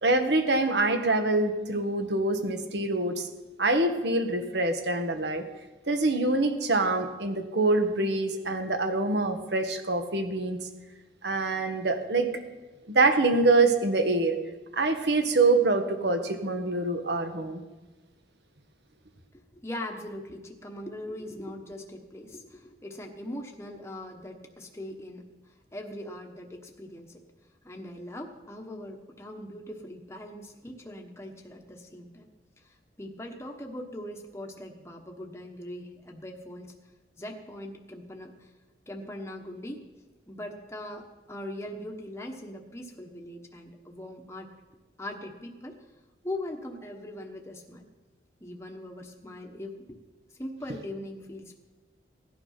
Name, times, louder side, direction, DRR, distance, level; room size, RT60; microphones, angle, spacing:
voice 1, 0.0-3.3 3.6-5.4 5.9-10.7 11.2-12.3 12.9-14.4 14.7-17.6, right 2 dB, 70° right, 6 dB, 1.6 m, -25 dB
voice 2, 19.3-25.3 25.7-27.2 27.6-32.2 32.6-36.7 37.2-38.5 38.9-39.8 40.3-44.5 45.0-45.8 46.2-47.8 48.4-50.0 50.4-51.6, left 1 dB, 15° left, 1 dB, 1.2 m, -40 dB
17.5 x 11.5 x 5.7 m, 1.2 s
head